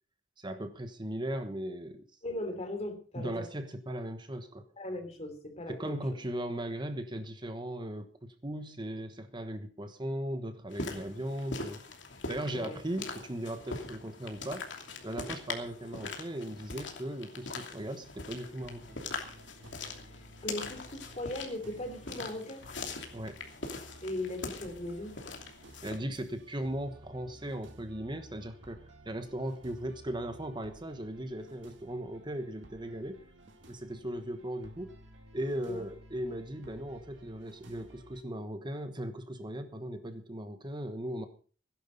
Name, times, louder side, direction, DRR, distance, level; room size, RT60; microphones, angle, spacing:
voice 1, 0.4-2.0 3.2-4.6 5.7-11.8 12.3-19.0 23.1-23.4 25.8-33.3 33.7-34.9 35.3-41.3, right 1 dB, 25° right, 8 dB, 1.2 m, -38 dB
voice 2, 2.2-3.5 4.8-6.2 12.5-12.8 20.1-22.7 24.0-25.2 35.6-35.8, left 1 dB, 35° left, 6 dB, 3.1 m, -38 dB
sound 1, 10.7-26.0, left 3 dB, 75° left, 2.9 m, -42 dB
sound 2, 18.4-38.2, right 1 dB, 70° right, 2.3 m, -55 dB
16.5 x 11.0 x 5.3 m, 0.41 s
head